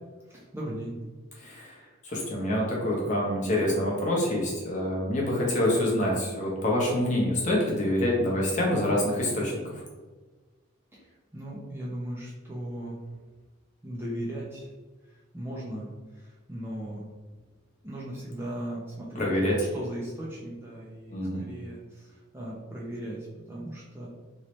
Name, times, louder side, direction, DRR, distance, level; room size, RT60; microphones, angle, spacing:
voice 1, 0.2-1.0 10.9-13.0 13.8-14.7 15.1-17.0 17.8-19.3 19.7-24.1, right 1 dB, 10° right, -5 dB, 0.5 m, -37 dB
voice 2, 1.4-9.8 19.1-19.5 21.1-21.5, left 1 dB, 35° left, -3 dB, 0.8 m, -26 dB
3.1 x 2.7 x 3.0 m, 1.3 s
head